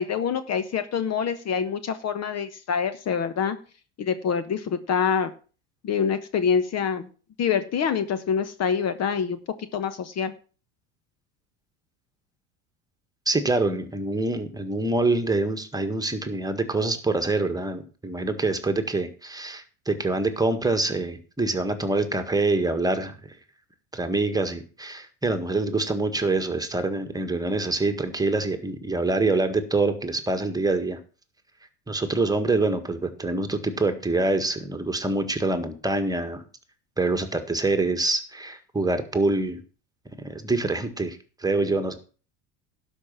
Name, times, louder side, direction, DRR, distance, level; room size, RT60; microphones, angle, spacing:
voice 1, 0.0-3.6 4.0-5.3 5.8-7.1 7.4-9.4 9.7-10.3, left 7 dB, 40° left, 12 dB, 1.2 m, -26 dB
voice 2, 13.2-23.4 23.9-31.0 31.9-36.4 37.0-39.6 40.2-41.9, right 2 dB, 10° right, 7 dB, 1.7 m, -25 dB
12.0 x 5.5 x 7.4 m, 0.37 s
supercardioid pair, 95°, 38 cm